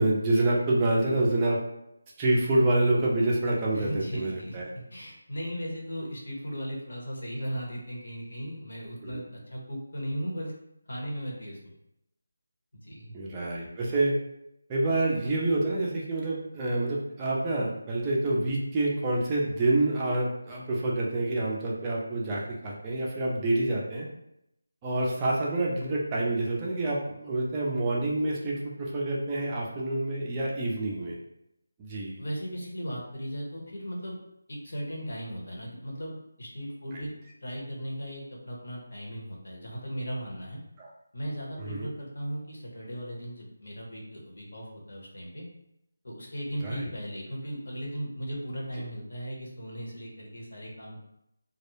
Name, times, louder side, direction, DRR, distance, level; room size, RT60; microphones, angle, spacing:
voice 1, 0.0-1.6 2.2-4.7 9.0-9.2 13.1-14.1 14.7-24.1 24.8-31.1 31.8-32.2 40.8-40.9 41.6-41.9 46.6-46.9, right 2 dB, 15° right, -5 dB, 0.4 m, -27 dB
voice 2, 3.7-4.6 4.9-10.5 10.9-11.7 12.8-13.2 32.2-34.2 34.5-37.1 37.4-40.6 41.1-45.4 46.0-51.0, equal, 65° left, -2 dB, 0.9 m, -37 dB
2.2 x 2.0 x 3.1 m, 0.82 s
figure-of-eight pair, 175°, 0 cm